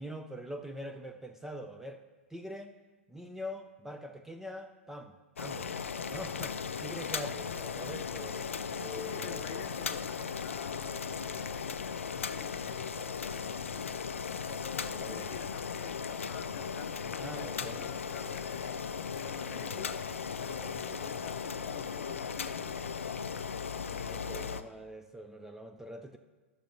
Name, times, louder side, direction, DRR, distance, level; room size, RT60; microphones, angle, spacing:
voice 1, 0.0-2.0 2.3-2.8 3.1-5.8 6.1-9.7 14.8-15.3 17.2-17.9 19.5-19.9 23.9-26.2, equal, 5° right, 0.4 m, -44 dB
Boiling, 5.4-24.6, left 6 dB, 75° left, 0.4 m, -37 dB
voice 2, 8.5-14.1 14.5-20.1 20.4-23.3, left 9 dB, 40° left, 0.8 m, -48 dB
14.0 x 6.7 x 2.7 m
figure-of-eight pair, 100°, 7 cm